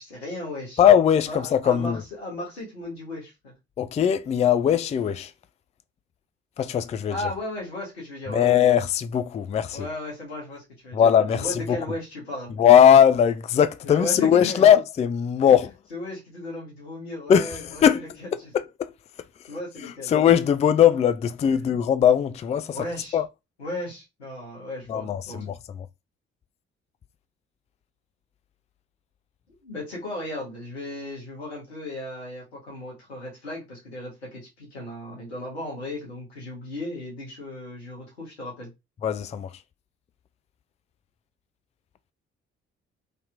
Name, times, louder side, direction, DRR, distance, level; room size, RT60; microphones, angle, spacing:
voice 1, 0.0-0.8 1.3-3.5 7.1-8.6 9.7-12.5 13.8-14.7 15.4-15.5 15.9-18.3 19.5-20.1 21.5-21.6 22.7-23.2 23.6-25.4 29.5-38.7, left 1 dB, 90° left, 1.2 m, -36 dB
voice 2, 0.8-2.0 3.8-5.3 6.6-7.2 8.3-9.9 10.9-11.8 12.6-15.7 17.3-18.0 18.5-18.9 19.8-22.8 23.1-23.3 24.9-25.5 39.0-39.5, left 9 dB, 20° left, 0.3 m, -19 dB
3.2 x 2.8 x 2.4 m
figure-of-eight pair, 45°, 31 cm